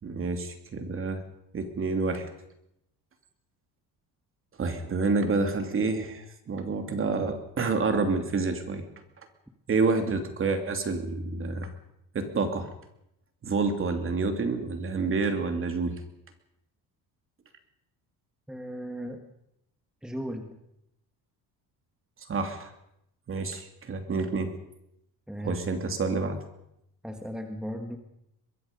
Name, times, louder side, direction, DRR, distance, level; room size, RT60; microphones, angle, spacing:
voice 1, 0.0-1.2 1.5-2.3 4.6-8.8 9.7-11.7 12.1-12.7 13.4-15.9 22.3-22.7 23.3-24.6 25.4-26.4, right 4 dB, 35° right, 6 dB, 2.9 m, -28 dB
voice 2, 18.5-19.3 20.0-20.6 25.3-25.6 27.0-28.0, equal, ahead, 5 dB, 1.6 m, -36 dB
23.0 x 21.5 x 5.4 m, 0.80 s
cardioid pair, 145°, 39 cm